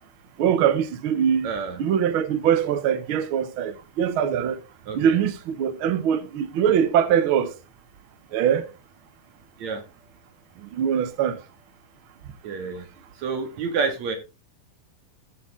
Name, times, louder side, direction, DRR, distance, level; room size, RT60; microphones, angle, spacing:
voice 1, 0.4-1.5 1.8-4.6 4.9-7.6 8.3-8.7 10.6-11.4, right 8 dB, 75° right, 1.2 m, -22 dB
voice 2, 1.4-1.8 4.9-5.2 9.6-9.8 12.4-12.9 13.2-14.2, right 5 dB, 60° right, 3.2 m, -28 dB
13.5 x 7.1 x 3.7 m
omnidirectional pair, 3.7 m